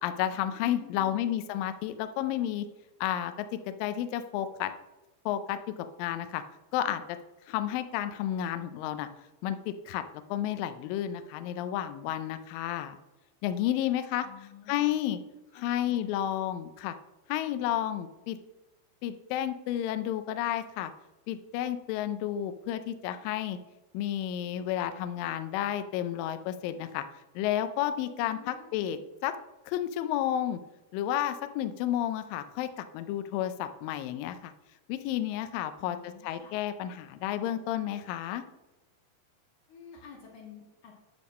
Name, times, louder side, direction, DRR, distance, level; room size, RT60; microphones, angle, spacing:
voice 1, 0.0-2.7 3.0-4.7 5.3-6.4 6.7-7.2 7.5-9.1 9.4-10.0 10.3-13.0 13.4-14.3 14.7-15.2 15.6-17.0 17.3-18.4 19.0-20.9 21.3-23.6 23.9-27.0 27.4-29.3 29.7-30.6 30.9-34.5 34.9-38.4, left 11 dB, 85° left, 10 dB, 2.0 m, -31 dB
voice 2, 0.6-1.4 14.2-14.9 15.5-16.3 28.2-29.0 35.7-36.5 39.7-40.9, left 7 dB, 60° left, -1 dB, 2.6 m, -51 dB
9.3 x 3.5 x 6.2 m, 1.0 s
omnidirectional pair, 4.6 m